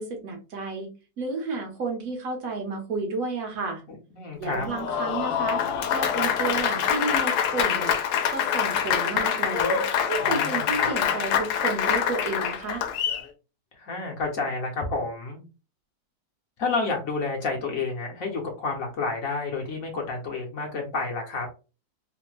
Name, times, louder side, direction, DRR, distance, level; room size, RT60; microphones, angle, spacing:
voice 1, 0.0-3.8 4.4-7.9 8.3-9.8 10.1-12.8, right 3 dB, 65° right, 3 dB, 1.4 m, -31 dB
voice 2, 4.1-4.7 10.2-10.9 13.7-15.4 16.6-21.5, left 3 dB, 65° left, 1 dB, 1.1 m, -30 dB
Applause, 4.5-13.3, left 8 dB, 85° left, 1.2 m, -25 dB
3.3 x 2.1 x 3.0 m, 0.32 s
omnidirectional pair, 1.7 m